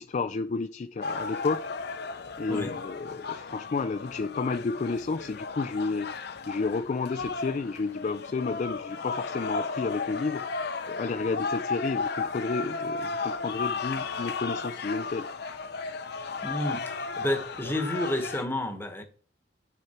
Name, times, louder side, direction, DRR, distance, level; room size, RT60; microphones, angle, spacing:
voice 1, 0.0-1.7 2.4-6.1 6.5-10.4 10.9-15.3, left 4 dB, 40° left, 0.4 m, -31 dB
sound 1, 1.0-18.4, left 4 dB, 60° left, 0.8 m, -34 dB
voice 2, 16.4-19.0, left 1 dB, 10° left, 1.2 m, -30 dB
8.6 x 6.6 x 4.3 m
head